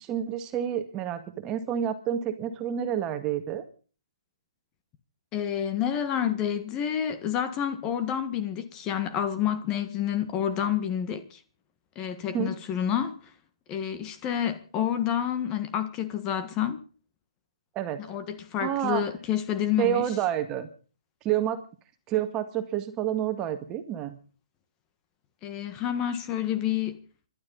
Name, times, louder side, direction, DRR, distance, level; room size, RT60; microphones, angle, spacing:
voice 1, 0.0-3.6 12.3-12.5 17.8-18.2 18.6-19.0 19.8-20.7 21.2-21.6 22.1-24.2, right 10 dB, 25° right, 1.9 m, -29 dB
voice 2, 5.3-11.4 11.9-13.2 13.7-16.8 18.1-20.1 25.4-26.9, left 9 dB, 25° left, 1.6 m, -29 dB
27.0 x 12.0 x 4.0 m
hypercardioid pair, 145°, 3 cm